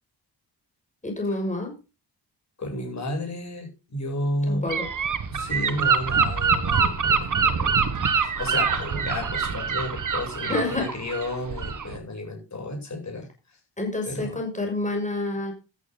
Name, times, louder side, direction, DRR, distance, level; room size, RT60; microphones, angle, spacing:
voice 1, 1.0-1.7 4.4-4.9 10.4-10.9 13.8-15.5, left 2 dB, 15° left, 3 dB, 6.6 m, -28 dB
voice 2, 2.6-4.7 5.3-7.9 8.2-13.3 14.1-14.3, left 1 dB, 40° left, 2 dB, 7.8 m, -32 dB
Gull seagull / Wind, 4.7-12.0, right 6 dB, 45° right, 1.6 m, -25 dB
14.0 x 12.0 x 3.9 m, 0.31 s
wide cardioid pair, 160°, 42 cm